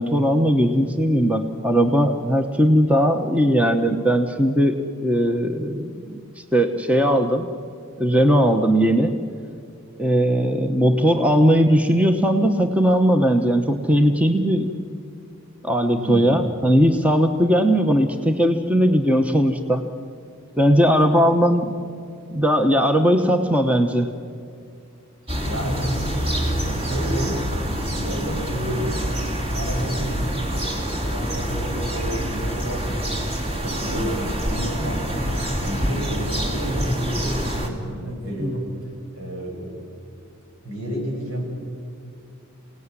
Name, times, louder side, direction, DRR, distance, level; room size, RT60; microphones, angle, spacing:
voice 1, 0.0-6.2 6.5-7.5 8.0-9.1 10.0-14.7 15.6-19.8 20.6-21.7 22.3-24.1 38.4-38.5, equal, 5° right, 5 dB, 1.0 m, -19 dB
voice 2, 15.9-16.3 25.3-27.4 27.8-29.1 29.3-38.7 39.1-39.8 40.6-41.5, equal, 75° right, -1 dB, 7.9 m, -31 dB
sound 1, 25.3-37.7, equal, 25° right, 2.8 m, -26 dB
28.0 x 18.0 x 9.8 m, 2.4 s
head